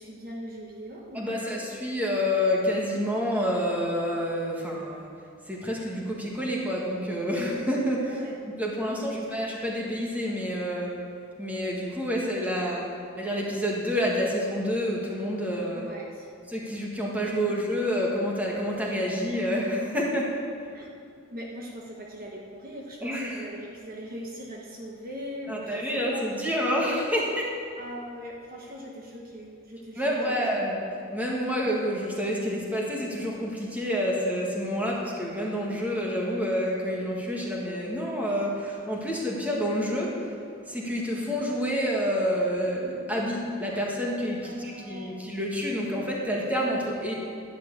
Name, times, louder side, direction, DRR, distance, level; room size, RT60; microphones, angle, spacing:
voice 1, 0.0-1.6 8.1-8.4 8.9-9.4 15.7-16.3 20.7-20.9 21.3-26.3 27.8-30.0 30.3-30.4 44.4-45.2, equal, 45° right, -1 dB, 1.1 m, -40 dB
voice 2, 1.1-5.1 5.4-8.2 8.6-10.9 11.4-12.9 13.2-15.9 16.5-20.3 23.0-23.4 25.5-27.5 29.9-40.2 40.6-47.1, equal, 5° right, -3 dB, 1.7 m, -28 dB
11.5 x 6.3 x 8.3 m, 2.4 s
head